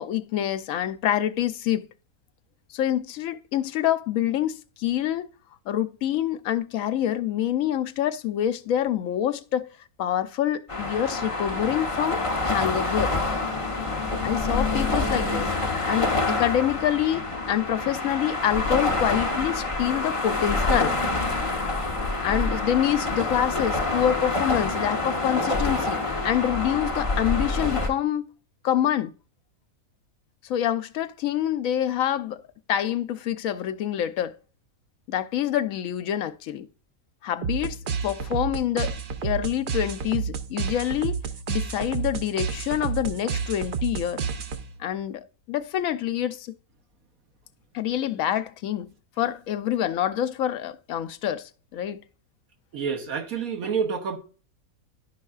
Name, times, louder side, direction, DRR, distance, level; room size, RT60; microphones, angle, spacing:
voice 1, 0.0-1.9 2.7-5.3 5.7-9.7 10.0-13.1 14.2-15.5 15.9-21.0 22.2-28.3 28.6-29.1 30.4-32.4 32.7-34.4 35.1-36.7 37.2-37.8 38.0-39.0 39.2-41.2 41.5-44.2 44.8-46.5 47.7-48.9 49.2-52.0, left 11 dB, 75° left, 1.0 m, -26 dB
sound 1, 10.7-27.9, left 2 dB, 25° left, 1.1 m, -27 dB
sound 2, 37.4-44.9, right 6 dB, 55° right, 0.5 m, -30 dB
voice 2, 52.7-54.2, right 6 dB, 80° right, 1.5 m, -28 dB
11.5 x 5.3 x 2.3 m
omnidirectional pair, 1.5 m